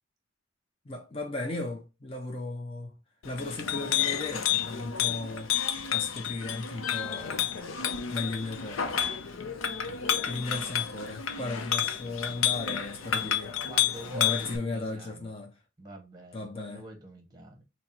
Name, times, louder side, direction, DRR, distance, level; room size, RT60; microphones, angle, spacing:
voice 1, 0.9-2.9 3.2-5.5 5.9-7.5 8.1-9.1 10.2-13.6 14.1-15.5 16.3-16.8, left 2 dB, 30° left, 0.6 m, -36 dB
Chink clink, 3.2-14.6, left 10 dB, 80° left, 0.6 m, -30 dB
voice 2, 9.8-10.3 13.7-15.3 15.8-17.6, right 1 dB, 20° right, 0.8 m, -45 dB
4.1 x 2.1 x 4.2 m
head